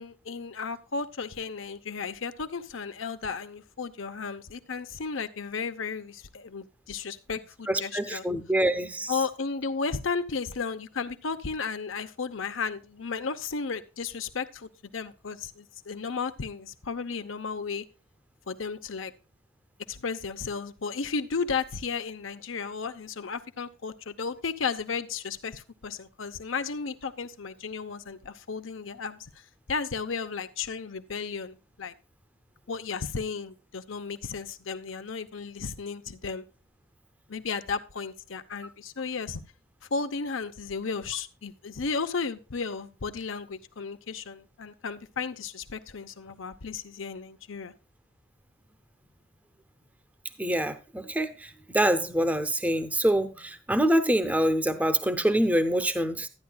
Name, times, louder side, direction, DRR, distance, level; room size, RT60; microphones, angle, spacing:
voice 1, 0.0-8.2 9.1-17.8 18.5-19.1 19.9-29.4 29.7-31.9 32.7-36.4 37.3-39.4 39.9-47.7, left 5 dB, 75° left, 0.8 m, -34 dB
voice 2, 7.7-9.1 50.4-56.3, right 1 dB, 10° right, 0.6 m, -25 dB
12.5 x 9.6 x 2.3 m
head